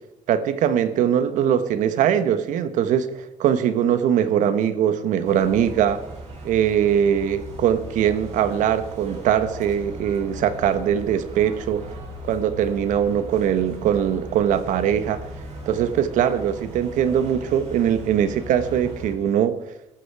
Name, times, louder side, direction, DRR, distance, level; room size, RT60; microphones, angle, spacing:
voice 1, 0.3-6.0 6.4-11.9 12.2-15.2 15.7-19.6, right 9 dB, 80° right, 11 dB, 1.3 m, -21 dB
sound 1, 5.2-19.1, right 1 dB, 60° right, 6.2 m, -38 dB
19.0 x 13.5 x 4.8 m, 0.90 s
cardioid pair, 100°, 13 cm